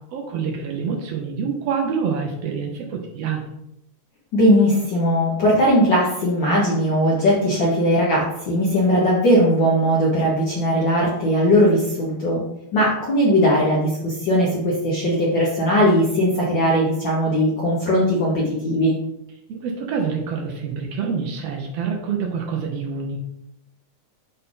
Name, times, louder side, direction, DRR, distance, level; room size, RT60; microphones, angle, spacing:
voice 1, 0.1-3.4 19.5-23.2, right 6 dB, 90° right, 1 dB, 1.3 m, -26 dB
voice 2, 4.3-12.4 12.7-18.9, equal, 70° left, -5 dB, 1.0 m, -19 dB
6.4 x 3.9 x 3.8 m, 0.81 s
omnidirectional pair, 3.8 m